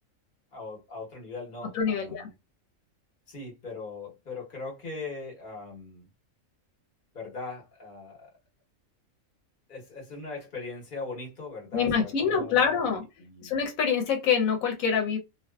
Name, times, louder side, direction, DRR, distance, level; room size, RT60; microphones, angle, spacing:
voice 1, 0.5-2.3 3.3-6.1 7.1-8.3 9.7-13.6, left 3 dB, 40° left, 1.1 m, -40 dB
voice 2, 1.7-2.3 11.7-13.0 13.4-15.2, left 6 dB, 85° left, 1.1 m, -25 dB
2.5 x 2.3 x 2.3 m
omnidirectional pair, 1.4 m